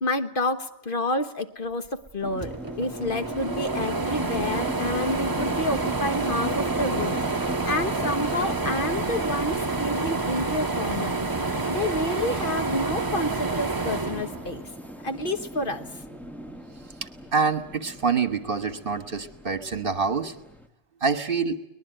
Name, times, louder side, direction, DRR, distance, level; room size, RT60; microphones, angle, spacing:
voice 1, 0.0-11.2 11.7-14.6 15.0-15.9, left 1 dB, 50° left, 8 dB, 1.4 m, -29 dB
sound 1, 2.1-2.2 2.4-15.0 15.4-16.6, right 3 dB, 20° right, 1.0 m, -29 dB
sound 2, 2.2-20.7, equal, ahead, 1.3 m, -39 dB
voice 2, 17.3-20.4 21.0-21.6, right 5 dB, 50° right, 11 dB, 1.6 m, -26 dB
23.5 x 19.5 x 9.1 m, 0.81 s
omnidirectional pair, 1.2 m